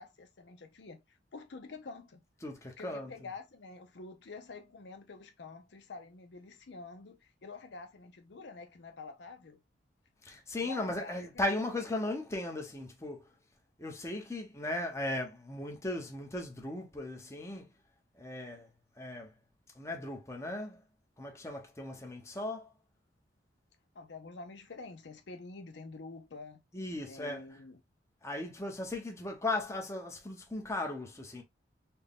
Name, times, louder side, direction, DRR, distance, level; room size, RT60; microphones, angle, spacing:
voice 1, 0.0-2.2 2.8-9.6 10.6-11.2 23.9-26.6 27.0-27.8, left 4 dB, 65° left, 0.6 m, -48 dB
voice 2, 2.4-3.1 10.2-13.2 13.8-17.7 18.2-18.7 19.0-19.3 19.8-20.8 21.2-22.7 26.7-27.4 28.2-31.4, left 2 dB, 15° left, 0.9 m, -37 dB
4.3 x 2.2 x 3.5 m
head